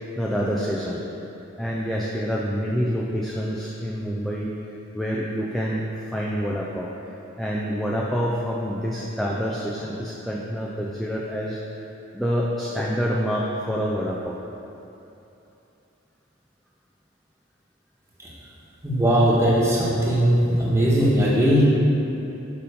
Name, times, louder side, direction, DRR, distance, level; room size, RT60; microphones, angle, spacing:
voice 1, 0.2-1.0 1.6-4.5 4.9-6.9 7.4-11.6 12.1-14.4, equal, ahead, -4 dB, 0.5 m, -27 dB
voice 2, 18.8-21.6, equal, 15° right, -6 dB, 1.5 m, -19 dB
6.8 x 5.5 x 5.1 m, 2.9 s
head